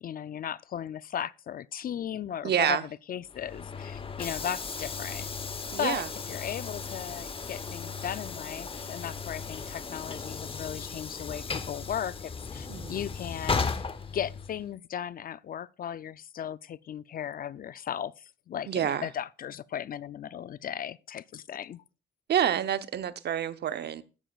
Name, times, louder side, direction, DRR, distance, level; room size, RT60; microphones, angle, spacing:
voice 1, 0.0-2.8 3.1-5.3 5.8-13.9 14.1-21.8, left 9 dB, 45° left, 0.4 m, -36 dB
voice 2, 2.4-2.8 5.7-6.1 12.7-13.0 18.7-19.1 22.3-24.0, right 9 dB, 55° right, 0.8 m, -28 dB
Train / Sliding door, 3.3-14.7, left 4 dB, 25° left, 0.8 m, -36 dB
13.5 x 9.9 x 2.4 m
cardioid pair, 90°, 20 cm